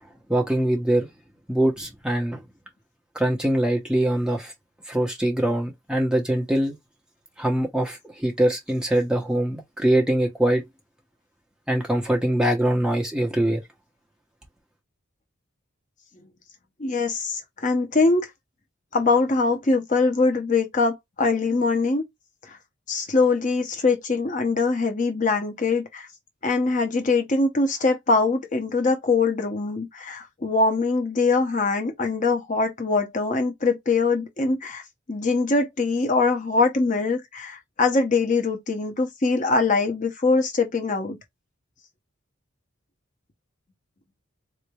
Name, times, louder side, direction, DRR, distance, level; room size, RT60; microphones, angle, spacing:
voice 1, 0.3-1.1 1.5-2.4 3.1-4.5 4.9-6.7 7.4-10.6 11.7-13.6, right 1 dB, 5° right, 0.8 m, -23 dB
voice 2, 16.8-18.3 18.9-22.0 22.5-22.6 22.9-26.1 26.4-34.8 35.1-41.2, left 3 dB, 35° left, 0.7 m, -23 dB
3.9 x 3.1 x 2.3 m
head